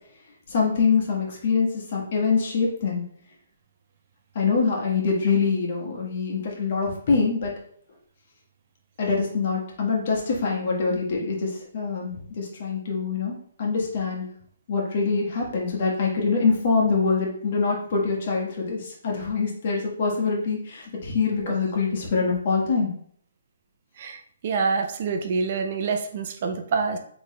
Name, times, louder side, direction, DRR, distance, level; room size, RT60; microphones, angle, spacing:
voice 1, 0.5-3.0 4.3-7.5 9.0-14.3 14.7-22.9, left 4 dB, 50° left, -2 dB, 1.5 m, -24 dB
voice 2, 24.4-27.0, right 5 dB, 45° right, 5 dB, 0.6 m, -26 dB
3.9 x 3.4 x 3.1 m, 0.62 s
hypercardioid pair, 145°, 0 cm